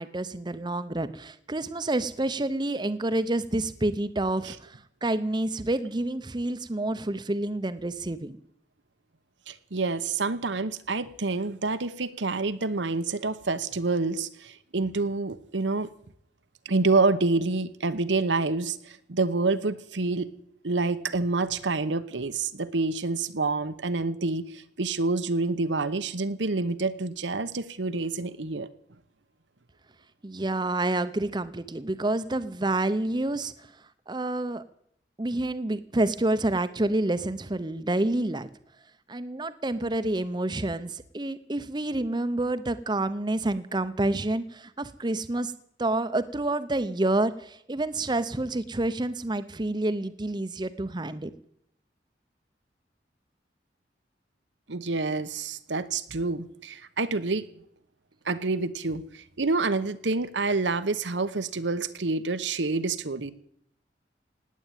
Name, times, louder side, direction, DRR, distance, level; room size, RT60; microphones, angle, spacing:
voice 1, 0.0-8.4 30.2-33.7 34.1-34.6 35.2-38.5 39.1-45.5 45.8-51.3, right 2 dB, 25° right, 13 dB, 0.7 m, -28 dB
voice 2, 9.5-15.9 16.6-20.3 20.6-28.7 54.7-57.5 58.2-63.3, right 3 dB, 85° right, 12 dB, 1.0 m, -27 dB
18.0 x 8.5 x 9.1 m, 0.70 s
head